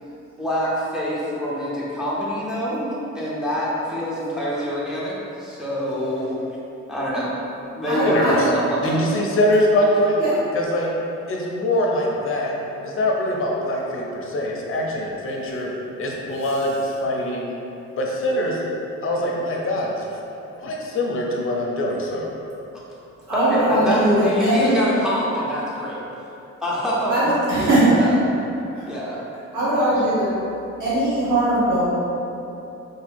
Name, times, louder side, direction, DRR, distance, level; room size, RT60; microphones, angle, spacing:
voice 1, 0.4-6.4 6.9-7.3 7.7-9.0 23.3-26.0 26.6-27.3 27.6-28.1 28.9-29.2, equal, ahead, -7 dB, 0.6 m, -25 dB
voice 2, 7.9-8.5 10.2-10.4 15.4-15.7 23.3-24.8 27.1-28.1 28.7-28.8 29.5-30.3 30.8-31.9, right 1 dB, 80° right, -9 dB, 1.3 m, -20 dB
voice 3, 8.8-10.2 10.5-10.9 11.3-12.5 12.8-15.7 16.0-17.5 18.0-18.6 19.0-19.9 20.6-22.3, left 1 dB, 45° left, -1 dB, 0.6 m, -23 dB
2.9 x 2.2 x 3.3 m, 2.9 s
cardioid pair, 90°, 30 cm